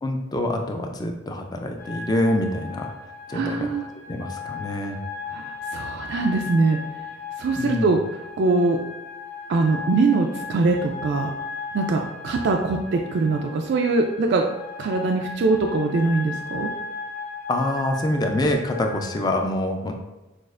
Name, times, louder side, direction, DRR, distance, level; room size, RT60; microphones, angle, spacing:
voice 1, 0.0-2.9 3.3-3.7 4.1-5.0 7.5-8.0 17.5-19.9, left 1 dB, 20° left, 4 dB, 0.4 m, -25 dB
sound 1, 1.8-19.3, left 4 dB, 45° left, 0.8 m, -36 dB
voice 2, 3.3-3.9 5.3-6.8 7.4-8.0 8.4-8.8 9.5-11.3 11.7-14.4 14.8-16.7, right 3 dB, 55° right, 3 dB, 0.3 m, -22 dB
6.1 x 2.4 x 2.4 m, 1.1 s
head